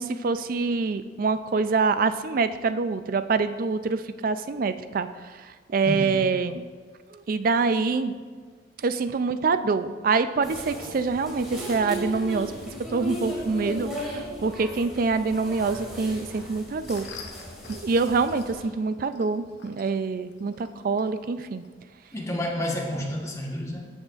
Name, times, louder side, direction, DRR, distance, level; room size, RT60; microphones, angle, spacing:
voice 1, 0.0-5.1 5.7-6.6 7.1-8.1 8.8-12.5 12.9-17.1 17.7-21.6, right 4 dB, 50° right, 11 dB, 0.4 m, -25 dB
voice 2, 5.9-6.2 22.1-23.9, left 1 dB, 15° left, -1 dB, 1.1 m, -30 dB
sound 1, 10.4-18.6, equal, 5° right, 2.4 m, -37 dB
sound 2, 16.7-21.7, left 5 dB, 65° left, 0.8 m, -48 dB
13.5 x 6.4 x 2.4 m, 1.5 s
head